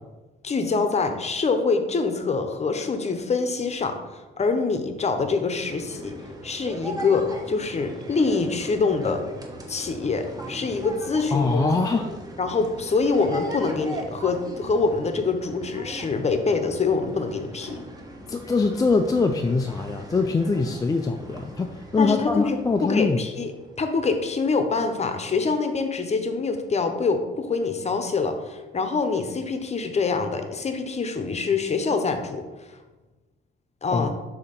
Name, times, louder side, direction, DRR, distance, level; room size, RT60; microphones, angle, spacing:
voice 1, 0.4-6.1 6.4-9.2 9.7-11.7 12.4-17.8 22.0-23.5 23.8-32.4 32.7-32.8 33.8-34.1, left 4 dB, 35° left, 7 dB, 0.8 m, -25 dB
sound 1, 5.5-23.9, right 1 dB, 20° right, 1.0 m, -39 dB
voice 2, 11.3-12.1 18.3-23.2 33.9-34.1, left 4 dB, 20° left, 4 dB, 0.3 m, -23 dB
6.6 x 2.9 x 5.3 m, 1.2 s
cardioid pair, 90°, 20 cm